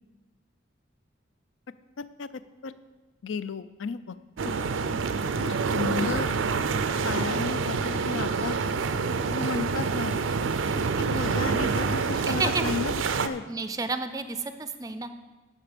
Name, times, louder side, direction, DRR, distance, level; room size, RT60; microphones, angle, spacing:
voice 1, 2.0-2.8 3.2-4.2 4.4-4.5 5.4-6.3 7.0-8.6 9.3-10.1 11.0-13.4, left 4 dB, 80° left, 14 dB, 0.4 m, -33 dB
sound 1, 4.4-13.3, right 4 dB, 80° right, 0.5 m, -27 dB
voice 2, 12.3-12.7 13.5-15.1, right 3 dB, 20° right, 9 dB, 0.4 m, -31 dB
10.5 x 6.7 x 5.1 m, 1.3 s
head